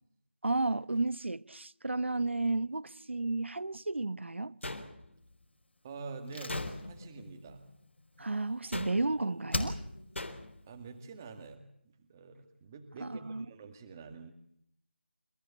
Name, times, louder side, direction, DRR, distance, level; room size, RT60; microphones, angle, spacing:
voice 1, 0.4-4.6 8.2-9.8 13.0-13.4, right 2 dB, 85° right, 1.1 m, -32 dB
sound 1, 4.6-5.3 6.5-7.1 8.7-9.3 10.2-10.7, left 2 dB, 85° left, 3.1 m, -41 dB
voice 2, 5.8-6.6 6.9-7.6 10.7-14.3, right 4 dB, 15° right, 1.9 m, -46 dB
Slam, 6.3-9.0 9.5-10.3 10.5-10.6, left 2 dB, 70° left, 5.1 m, -39 dB
27.5 x 16.5 x 8.4 m
figure-of-eight pair, 175°, 6 cm